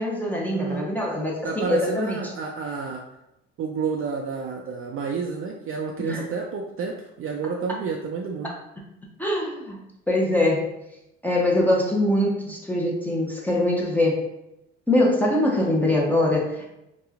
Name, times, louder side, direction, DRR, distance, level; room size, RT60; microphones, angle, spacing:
voice 1, 0.0-2.2 6.0-6.2 9.2-10.7 11.2-14.3 14.9-16.7, left 1 dB, 5° left, -3 dB, 0.6 m, -23 dB
voice 2, 0.5-0.9 1.4-3.0 3.6-8.5, right 5 dB, 45° right, 0 dB, 0.4 m, -30 dB
3.0 x 2.2 x 2.4 m, 0.88 s
supercardioid pair, 70°, 30 cm